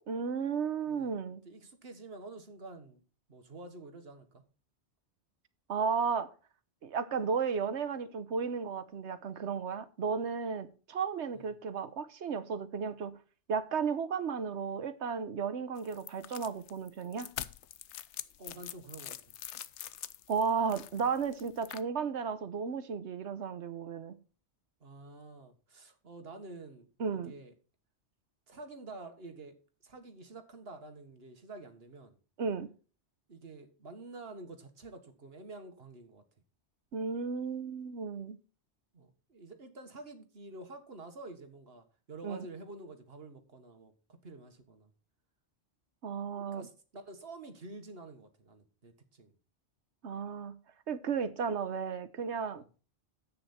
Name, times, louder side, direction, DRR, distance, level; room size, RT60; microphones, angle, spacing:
voice 1, 0.1-1.4 5.7-6.3 6.8-13.1 13.5-17.3 20.3-24.2 27.0-27.3 32.4-32.7 36.9-38.4 42.2-42.5 46.0-46.7 50.0-50.6 50.9-52.6, right 6 dB, 80° right, 1.3 m, -34 dB
voice 2, 1.5-3.0 3.3-4.4 11.3-11.5 18.4-19.2 24.8-27.5 28.5-29.6 29.8-32.2 33.3-36.2 38.9-44.9 46.4-49.3 52.6-52.7, right 2 dB, 60° right, 1.8 m, -49 dB
sound 1, 15.8-21.8, left 11 dB, 85° left, 1.0 m, -45 dB
10.0 x 8.7 x 4.3 m
omnidirectional pair, 1.1 m